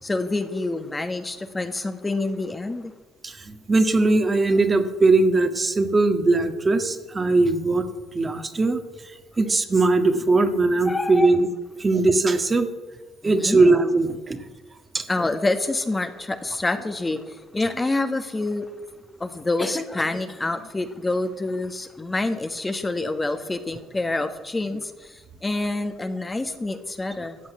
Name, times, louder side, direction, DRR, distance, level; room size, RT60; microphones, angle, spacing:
voice 1, 0.0-2.9 10.8-11.3 13.2-13.6 15.1-18.7 19.2-27.4, left 2 dB, 20° left, 8 dB, 1.4 m, -27 dB
voice 2, 3.2-7.8 8.1-8.8 9.4-11.5 11.8-12.7 13.2-14.4 14.9-15.0, right 3 dB, 30° right, 7 dB, 1.6 m, -20 dB
14.0 x 8.0 x 9.3 m, 1.2 s
supercardioid pair, 70°, 0 cm